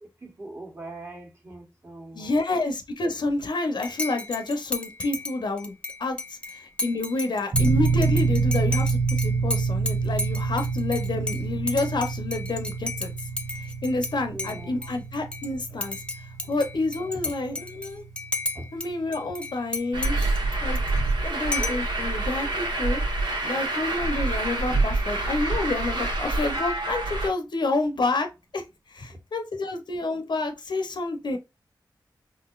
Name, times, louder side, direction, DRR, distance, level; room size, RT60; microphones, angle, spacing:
voice 1, 0.2-2.4 14.3-14.9 18.5-18.7 29.1-29.2 31.3-31.4, right 2 dB, 30° right, 1.3 m, -41 dB
voice 2, 2.1-13.1 13.6-16.0 16.5-18.0 18.7-20.2 20.6-20.8 21.2-23.0 23.4-28.3 28.5-31.4, left 2 dB, 70° left, 0.7 m, -29 dB
Dishes pots and pans / Cutlery silverware / Chink clink, 3.8-14.1 14.4-15.5 15.8-18.9 19.1-21.1 21.5-21.9, left 2 dB, 15° left, 0.6 m, -33 dB
sound 1, 7.5-21.9, right 4 dB, 50° right, 0.8 m, -28 dB
Truck, 19.9-27.3, right 2 dB, 75° right, 1.1 m, -26 dB
3.9 x 2.7 x 2.4 m
wide cardioid pair, 70°, 8 cm